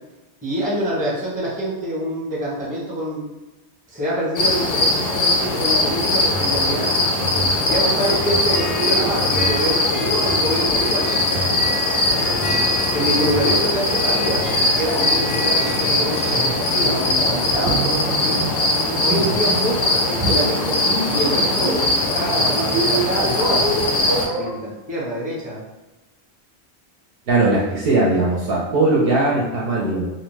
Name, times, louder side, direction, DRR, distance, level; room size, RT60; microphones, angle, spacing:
voice 1, 0.4-3.2 3.9-6.9 7.6-11.2 12.4-18.4 19.0-21.9 22.1-25.6, right 1 dB, 10° right, -7 dB, 0.7 m, -26 dB
sound 1, 4.4-24.2, left 2 dB, 55° left, 0.5 m, -21 dB
sound 2, 6.0-24.5, right 3 dB, 25° right, 0.3 m, -29 dB
Harp, 8.0-17.1, left 1 dB, 90° left, 0.9 m, -32 dB
voice 2, 27.3-30.1, right 2 dB, 65° right, -4 dB, 0.7 m, -19 dB
2.6 x 2.1 x 3.2 m, 1.1 s
omnidirectional pair, 1.1 m